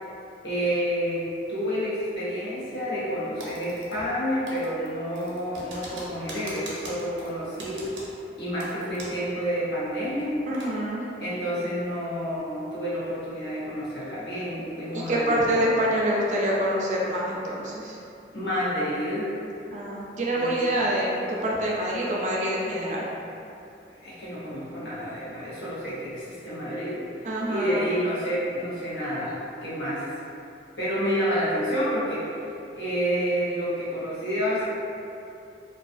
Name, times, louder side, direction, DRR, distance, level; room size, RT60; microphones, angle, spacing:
voice 1, 0.4-1.2 1.5-7.9 8.4-10.3 11.2-15.6 18.3-19.3 20.3-20.6 23.9-27.0 27.5-29.3 29.6-30.0 30.8-32.2 32.7-34.7, equal, 70° left, -10 dB, 0.8 m, -29 dB
Typing, 3.4-4.2 4.5-9.3 9.6-9.7 10.1-10.7, right 1 dB, 90° right, 0.5 m, -42 dB
voice 2, 10.5-11.0 14.9-18.0 19.7-23.0 27.2-27.9, right 1 dB, 40° right, -4 dB, 0.3 m, -26 dB
2.3 x 2.3 x 2.5 m, 2.6 s
head